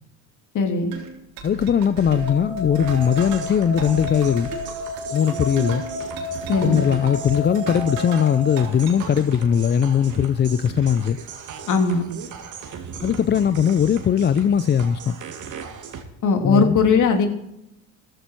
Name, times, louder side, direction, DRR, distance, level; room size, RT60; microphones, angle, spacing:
voice 1, 0.5-0.9 6.5-6.8 11.7-12.1 16.2-17.3, left 4 dB, 55° left, 4 dB, 3.0 m, -19 dB
sound 1, 0.9-8.3 8.6-9.2, right 4 dB, 75° right, 3.8 m, -36 dB
voice 2, 1.4-4.5 5.1-5.8 6.6-11.2 13.0-15.1 16.4-16.8, left 8 dB, 30° left, 13 dB, 0.5 m, -20 dB
sound 2, 2.1-8.6, left 2 dB, 85° left, 5.7 m, -32 dB
sound 3, 2.8-16.0, right 6 dB, 55° right, 2.5 m, -37 dB
14.5 x 12.5 x 4.6 m, 0.80 s
supercardioid pair, 85°, 36 cm